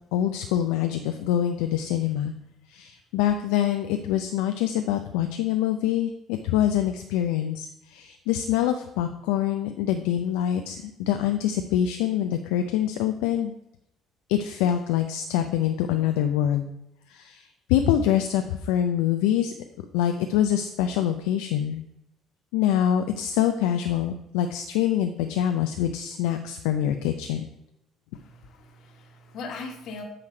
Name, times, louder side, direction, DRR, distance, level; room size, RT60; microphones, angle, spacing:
voice 1, 0.1-2.3 2.7-13.5 14.3-16.7 17.1-19.5 19.9-21.8 22.5-27.4, left 10 dB, 75° left, 6 dB, 0.4 m, -25 dB
voice 2, 28.1-30.0, left 4 dB, 60° left, 3 dB, 1.4 m, -40 dB
8.7 x 3.1 x 5.1 m, 0.85 s
hypercardioid pair, 60°, 0 cm